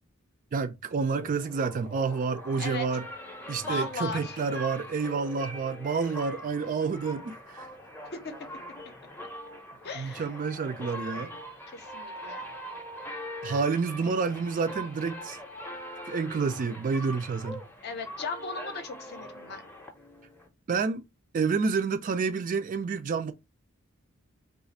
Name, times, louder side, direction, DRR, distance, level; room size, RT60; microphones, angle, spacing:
voice 1, 0.5-3.0 3.5-7.7 9.9-11.3 13.4-15.4 16.0-17.6 20.7-21.0 21.3-23.3, right 5 dB, 40° right, 0.3 m, -29 dB
sound 1, 1.1-20.5, equal, 10° left, 0.6 m, -42 dB
voice 2, 3.6-4.4 8.1-8.3 9.8-10.3 11.7-12.5 17.8-19.6, left 3 dB, 50° left, 0.6 m, -36 dB
2.4 x 2.4 x 4.0 m
head